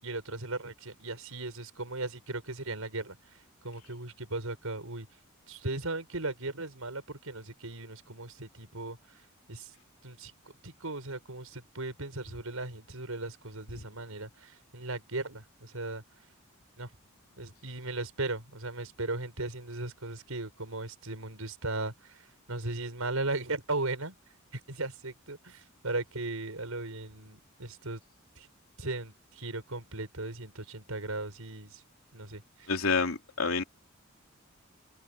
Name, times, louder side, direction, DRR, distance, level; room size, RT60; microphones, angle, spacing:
voice 1, 0.0-5.1 5.5-9.7 10.0-10.3 10.6-16.0 16.8-16.9 17.4-24.2 24.5-28.0 28.4-28.5 28.8-31.8 32.1-32.7, right 2 dB, 85° right, 5.3 m, -37 dB
voice 2, 32.7-33.6, left 4 dB, 80° left, 3.0 m, -28 dB
head